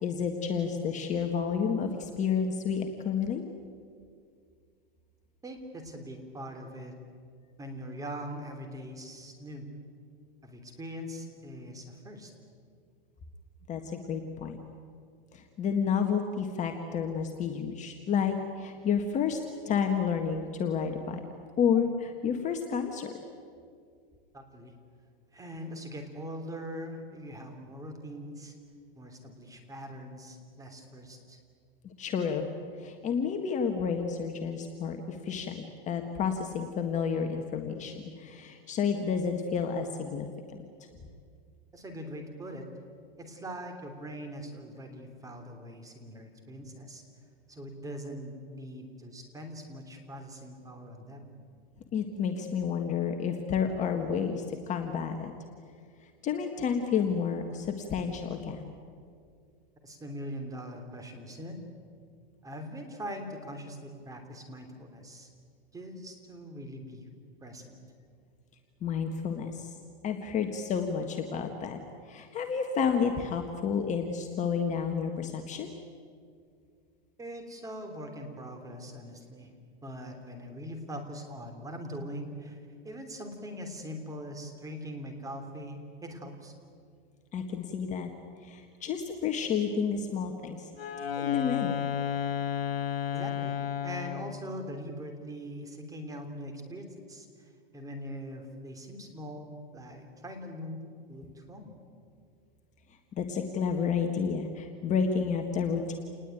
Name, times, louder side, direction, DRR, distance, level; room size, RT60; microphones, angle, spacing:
voice 1, 0.0-3.4 13.7-14.6 15.3-19.4 19.6-21.2 21.6-23.1 31.8-32.5 32.8-40.3 40.5-40.6 51.9-55.3 56.2-58.7 68.8-69.7 70.0-71.8 72.1-75.7 87.3-88.1 88.4-90.7 91.2-91.8 103.1-106.0, left 6 dB, 25° left, 4 dB, 1.7 m, -30 dB
voice 2, 5.4-6.9 7.6-9.7 10.4-12.3 24.3-24.7 25.3-28.5 28.9-31.4 41.7-42.7 43.2-47.0 47.5-51.3 59.8-61.6 62.4-65.3 65.7-67.1 67.4-67.8 77.2-79.5 79.8-82.6 82.8-86.5 93.1-93.6 93.8-101.7, equal, 10° right, 5 dB, 3.3 m, -42 dB
Wind instrument woodwind instrument, 90.7-94.4, left 8 dB, 80° left, 3.4 m, -32 dB
28.5 x 20.0 x 9.2 m, 2.2 s
supercardioid pair, 140°, 29 cm